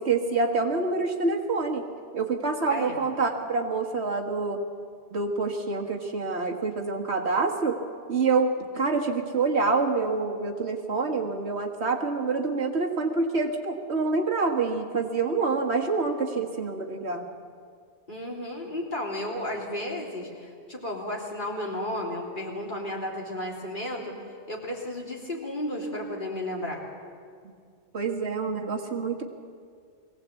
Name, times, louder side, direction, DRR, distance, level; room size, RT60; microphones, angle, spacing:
voice 1, 0.0-1.8 2.1-4.6 5.1-7.8 8.1-17.3 27.9-29.2, right 4 dB, 75° right, 2 dB, 2.0 m, -27 dB
voice 2, 18.1-24.2 24.5-26.8, left 1 dB, 50° left, -2 dB, 3.6 m, -33 dB
22.0 x 17.0 x 8.4 m, 2.2 s
omnidirectional pair, 1.1 m